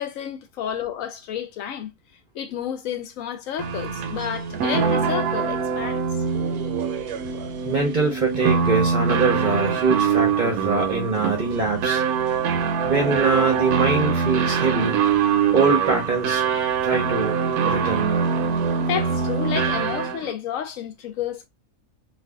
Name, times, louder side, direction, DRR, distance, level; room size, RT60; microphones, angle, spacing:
voice 1, 0.0-1.9 2.3-6.0 18.8-21.5, left 9 dB, 70° left, 0.9 m, -30 dB
sound 1, 3.6-20.3, right 6 dB, 85° right, 1.1 m, -23 dB
voice 2, 7.6-12.0 12.9-15.0 15.5-16.4 16.8-17.4 17.6-18.2, right 4 dB, 45° right, 0.7 m, -23 dB
2.5 x 2.4 x 3.4 m
omnidirectional pair, 1.5 m